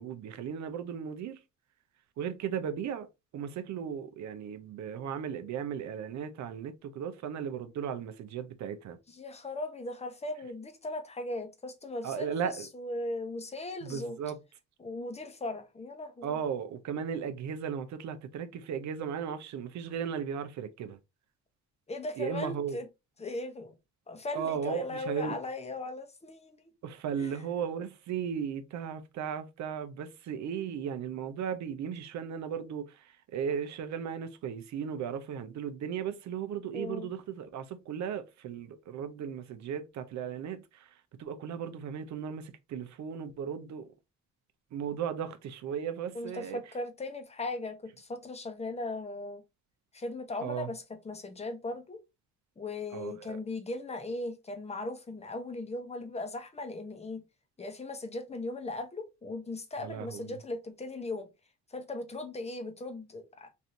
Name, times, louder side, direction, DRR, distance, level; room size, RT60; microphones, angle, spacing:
voice 1, 0.0-1.4 2.2-3.1 3.3-9.0 12.0-12.7 13.8-14.4 16.2-21.0 22.2-22.8 24.3-25.3 26.8-43.9 44.7-46.6 50.4-50.7 52.9-53.4 59.8-60.4, right 7 dB, 65° right, 0.6 m, -36 dB
voice 2, 9.1-14.2 14.8-16.4 21.9-22.9 23.2-23.7 24.1-26.6 27.2-27.4 36.7-37.1 46.1-49.4 49.9-52.0 52.6-57.2 57.6-61.3 61.7-63.5, left 2 dB, 20° left, 0.8 m, -38 dB
3.2 x 2.6 x 2.6 m
cardioid pair, 90°, 30 cm